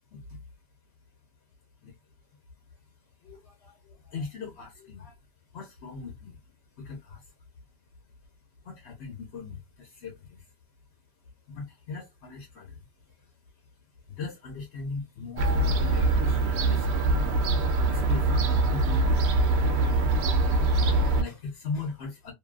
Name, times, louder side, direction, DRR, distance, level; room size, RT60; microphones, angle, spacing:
voice 1, 0.1-0.4 1.8-1.9 3.2-5.2 5.5-6.4 6.8-7.3 8.6-10.5 11.5-13.3 14.1-22.3, left 4 dB, 85° left, 1.1 m, -40 dB
Fowl / Gull seagull, 15.4-21.2, right 2 dB, 90° right, 0.9 m, -23 dB
2.6 x 2.3 x 2.3 m
omnidirectional pair, 1.1 m